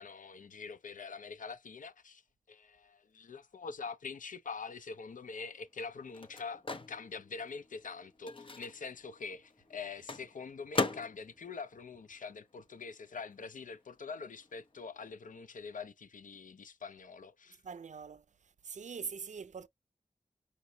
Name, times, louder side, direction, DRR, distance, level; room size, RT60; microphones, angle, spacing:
voice 1, 0.0-2.2 2.5-17.6, left 5 dB, 85° left, 0.5 m, -44 dB
Microwave oven, 4.8-12.9 13.2-15.1, left 3 dB, 40° left, 0.7 m, -41 dB
voice 2, 17.6-18.2 18.6-19.7, right 6 dB, 65° right, 0.4 m, -43 dB
5.2 x 2.8 x 2.7 m
wide cardioid pair, 60°, 13 cm